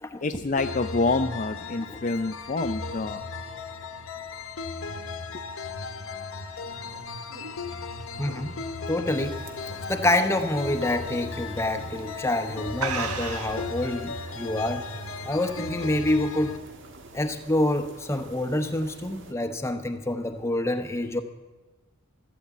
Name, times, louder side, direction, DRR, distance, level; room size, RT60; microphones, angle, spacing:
voice 1, 0.2-3.2, left 3 dB, 35° left, 7 dB, 0.4 m, -27 dB
sound 1, 0.6-16.6, left 4 dB, 65° left, 1.0 m, -36 dB
sound 2, 6.6-9.8 10.2-10.5 10.9-11.0 11.8-12.0 12.3-12.4 12.8-13.7, right 5 dB, 85° right, 1.3 m, -35 dB
voice 2, 8.2-8.5 8.9-9.4 9.9-14.9 15.2-16.5 17.1-21.2, left 1 dB, 10° left, 7 dB, 0.9 m, -27 dB
sound 3, 9.1-19.3, right 2 dB, 55° right, 1.6 m, -47 dB
13.5 x 12.5 x 8.3 m, 1.2 s
head